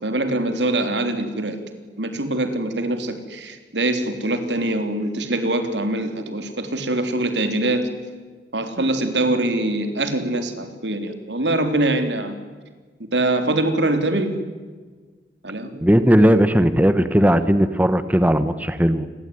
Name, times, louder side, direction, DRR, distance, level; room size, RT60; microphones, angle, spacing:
voice 1, 0.0-1.6 2.0-7.9 8.5-12.4 13.1-14.4 15.4-15.8, right 2 dB, 90° right, 8 dB, 3.6 m, -23 dB
voice 2, 15.8-19.1, equal, 10° right, 12 dB, 1.2 m, -17 dB
28.5 x 21.5 x 9.6 m, 1.4 s
head